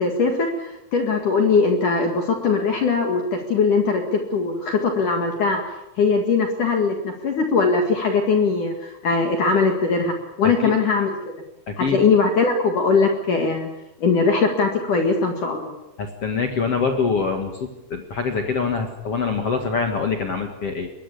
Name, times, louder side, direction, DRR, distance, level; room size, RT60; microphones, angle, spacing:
voice 1, 0.0-5.6 6.0-11.1 11.8-13.7 14.0-15.7, left 4 dB, 50° left, 3 dB, 2.7 m, -20 dB
voice 2, 11.7-12.0 16.0-20.9, left 5 dB, 70° left, 4 dB, 1.4 m, -25 dB
23.5 x 20.5 x 8.4 m, 0.93 s
omnidirectional pair, 5.8 m